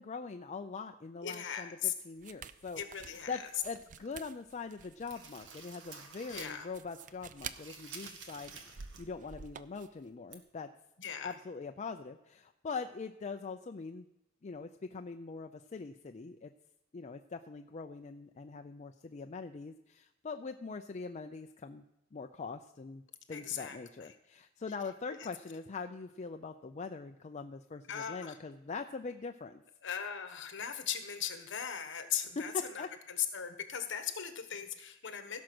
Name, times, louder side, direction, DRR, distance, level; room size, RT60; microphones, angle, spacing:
voice 1, 0.0-8.6 9.0-10.7 11.2-14.1 14.4-16.5 16.9-21.8 22.1-23.0 23.3-29.6 32.4-32.9, left 4 dB, 35° left, 6 dB, 0.4 m, -42 dB
voice 2, 1.2-1.9 2.8-3.5 6.3-6.7 11.0-11.3 23.3-24.1 25.2-25.3 27.9-28.4 29.8-35.4, left 9 dB, 60° left, 8 dB, 1.3 m, -38 dB
sound 1, 2.2-10.0, right 7 dB, 40° right, 0.5 m, -50 dB
sound 2, 3.2-4.3 4.7-6.7 7.0-9.1 9.4-9.5 10.3-10.4, right 5 dB, 60° right, 1.5 m, -51 dB
16.5 x 6.2 x 6.1 m, 0.90 s
head